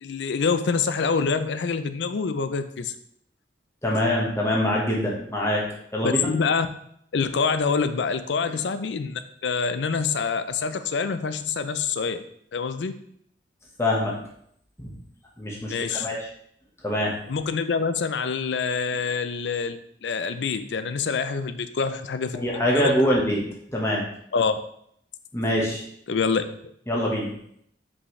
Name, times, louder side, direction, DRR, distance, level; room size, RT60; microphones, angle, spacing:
voice 1, 0.0-2.9 6.0-6.7 7.1-12.2 12.5-13.0 15.7-16.1 17.3-23.2 24.3-24.6 26.1-26.5, left 5 dB, 85° left, 11 dB, 0.5 m, -26 dB
voice 2, 3.8-5.6 5.9-6.3 13.8-14.1 14.8-14.9 15.4-16.3 16.8-17.2 22.3-23.4 23.7-24.0 25.3-25.8 26.9-27.3, left 1 dB, 15° left, -3 dB, 1.2 m, -24 dB
5.5 x 5.5 x 3.2 m, 0.69 s
head